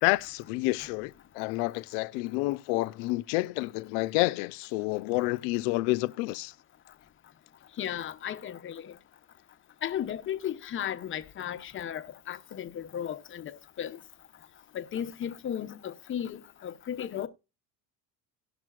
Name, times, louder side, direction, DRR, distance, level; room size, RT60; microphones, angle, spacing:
voice 1, 0.0-6.5, left 21 dB, 90° left, 0.5 m, -29 dB
voice 2, 7.8-8.9 9.8-13.5 13.8-14.0 14.7-17.3, left 9 dB, 35° left, 0.9 m, -35 dB
18.0 x 6.0 x 2.3 m
cardioid pair, 115°, 35 cm